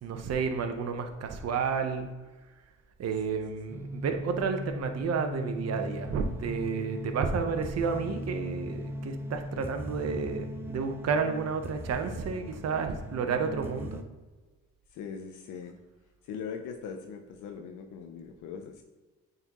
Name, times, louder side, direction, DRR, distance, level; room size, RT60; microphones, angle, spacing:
voice 1, 0.0-2.1 3.0-14.0, right 5 dB, 55° right, 5 dB, 0.9 m, -31 dB
sound 1, 3.7-14.0, equal, 10° right, 0.6 m, -39 dB
voice 2, 14.9-15.8 16.2-18.8, left 6 dB, 85° left, 4 dB, 0.7 m, -41 dB
9.0 x 4.0 x 3.0 m, 1.2 s
cardioid pair, 90°, 30 cm